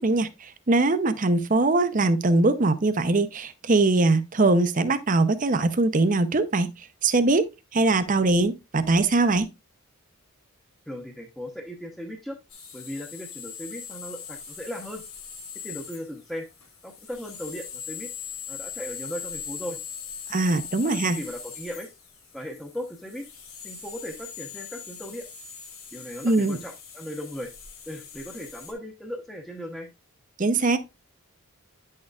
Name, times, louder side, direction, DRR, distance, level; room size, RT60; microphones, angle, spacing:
voice 1, 0.0-7.5 7.7-9.5 20.3-21.2 26.2-26.6 30.4-30.8, right 2 dB, 35° right, 0.6 m, -22 dB
voice 2, 10.9-12.4 12.7-15.0 15.6-16.5 16.8-18.1 18.5-19.8 20.8-21.9 22.3-23.3 23.6-25.3 25.9-27.5 27.9-29.9, equal, ahead, 0.8 m, -37 dB
sound 1, 12.5-28.7, left 7 dB, 75° left, 2.7 m, -41 dB
9.8 x 6.5 x 2.3 m
head